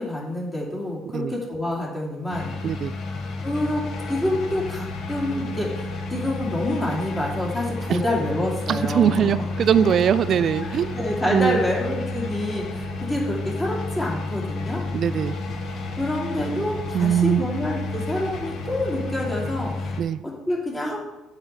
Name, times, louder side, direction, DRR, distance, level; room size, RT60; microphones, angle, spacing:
voice 1, 0.0-2.5 3.4-3.8 4.1-9.4 10.6-14.8 16.0-19.9 20.2-21.1, left 1 dB, 20° left, -4 dB, 2.6 m, -27 dB
sound 1, 2.3-20.0, left 3 dB, 55° left, 1.0 m, -31 dB
voice 2, 8.7-11.0 11.3-11.6 14.9-15.3 16.9-17.4 20.0-20.2, right 9 dB, 55° right, 15 dB, 0.4 m, -21 dB
7.1 x 4.3 x 6.7 m, 1.0 s
hypercardioid pair, 55°, 0 cm